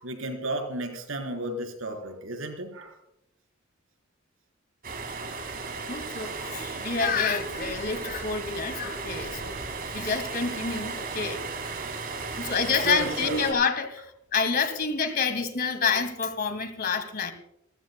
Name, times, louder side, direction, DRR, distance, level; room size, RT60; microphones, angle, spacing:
voice 1, 0.0-3.0 7.1-7.2 11.1-11.4 12.3-12.5 12.8-13.5, right 1 dB, 80° right, 4 dB, 4.0 m, -34 dB
sound 1, 4.8-13.5, right 4 dB, 50° right, 3.4 m, -35 dB
voice 2, 5.9-9.5 9.9-11.4 12.4-14.1 14.3-17.3, left 5 dB, 50° left, 8 dB, 2.2 m, -28 dB
28.5 x 15.0 x 2.2 m, 0.79 s
head